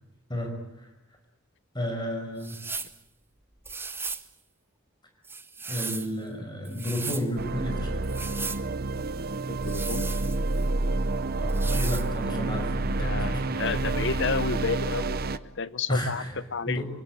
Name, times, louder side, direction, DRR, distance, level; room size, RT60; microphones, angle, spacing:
voice 1, 1.7-2.6 5.7-8.1 11.4-14.0 15.9-16.3 16.6-16.8, left 1 dB, 20° left, 4 dB, 5.7 m, -32 dB
sound 1, 2.4-3.0 3.6-4.3 5.2-6.1 6.6-7.3 8.0-8.6 9.6-10.7 11.5-12.1, right 4 dB, 10° right, 0.9 m, -36 dB
sound 2, 7.4-15.4, right 2 dB, 50° right, 0.8 m, -28 dB
voice 2, 9.5-10.1 12.3-12.5 13.0-16.2 16.5-16.8, left 4 dB, 60° left, 16 dB, 0.9 m, -31 dB
26.5 x 18.0 x 9.2 m, 0.90 s
head